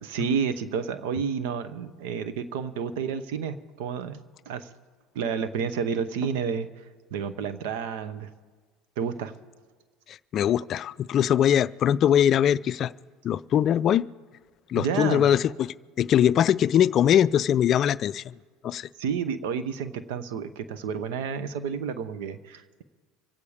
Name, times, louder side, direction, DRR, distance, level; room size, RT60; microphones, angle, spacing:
voice 1, 0.0-4.7 5.1-6.8 7.1-8.3 9.0-9.3 14.7-15.3 19.0-22.8, right 6 dB, 80° right, 0.9 m, -30 dB
voice 2, 10.1-12.9 13.2-14.1 14.7-18.3 18.6-18.9, left 10 dB, 50° left, 0.4 m, -22 dB
25.5 x 8.6 x 5.0 m
supercardioid pair, 85°, 0 cm